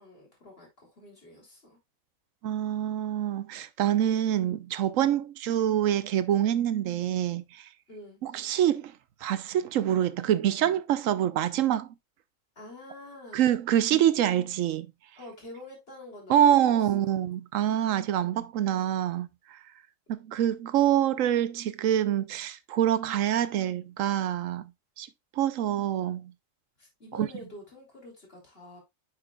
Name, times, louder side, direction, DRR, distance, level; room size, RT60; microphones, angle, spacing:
voice 1, 0.0-1.8 7.9-8.2 12.6-13.4 15.2-16.4 16.7-17.1 26.8-28.8, left 1 dB, 45° left, 3.4 m, -47 dB
voice 2, 2.4-7.6 8.2-8.9 9.2-11.9 13.3-14.9 16.3-19.3 20.1-24.7 25.0-25.1 25.4-26.3 27.2-27.3, right 11 dB, 80° right, 1.0 m, -26 dB
8.9 x 5.9 x 2.3 m
omnidirectional pair, 1.4 m